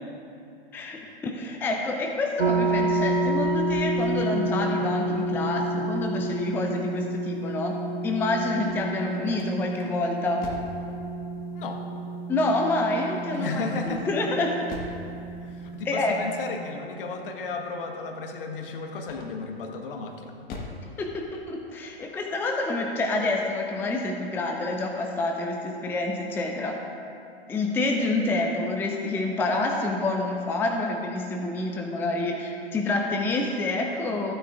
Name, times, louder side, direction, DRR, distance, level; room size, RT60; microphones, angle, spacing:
voice 1, 0.7-7.8 8.0-10.5 12.3-14.6 15.8-16.1 21.0-26.8 27.5-34.3, left 2 dB, 5° left, 2 dB, 0.5 m, -28 dB
sound 1, 2.4-16.5, right 2 dB, 90° right, 0.6 m, -30 dB
sound 2, 8.7-10.8 13.8-15.1 19.0-19.6 20.1-20.9, left 3 dB, 30° left, 1.4 m, -41 dB
voice 2, 13.3-14.1 15.6-20.3, left 4 dB, 60° left, 3 dB, 1.4 m, -34 dB
15.0 x 9.2 x 2.5 m, 2.7 s
figure-of-eight pair, 110°, 31 cm